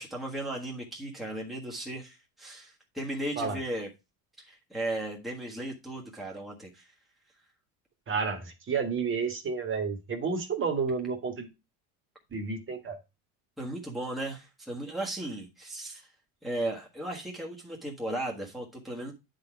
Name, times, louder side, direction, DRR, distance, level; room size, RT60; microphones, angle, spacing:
voice 1, 0.0-3.9 4.4-6.9 13.6-16.1 16.4-19.1, right 1 dB, ahead, 1.4 m, -36 dB
voice 2, 8.1-11.5 12.3-13.0, right 5 dB, 25° right, 1.6 m, -31 dB
9.5 x 4.1 x 4.6 m
cardioid pair, 140°, 44 cm